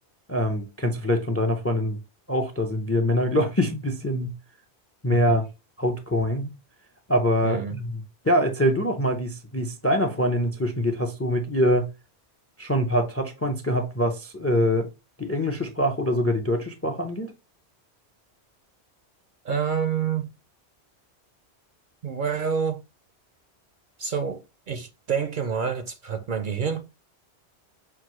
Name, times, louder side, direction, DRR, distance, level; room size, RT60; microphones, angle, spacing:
voice 1, 0.3-2.0 2.3-4.3 5.0-5.4 5.8-6.5 7.1-11.9 12.6-14.9 15.2-17.3, equal, 20° left, 0.4 m, -24 dB
voice 2, 7.4-7.8 19.4-20.3 22.0-22.8 24.0-26.8, right 6 dB, 60° right, 0.6 m, -28 dB
5.9 x 2.6 x 2.9 m
omnidirectional pair, 1.1 m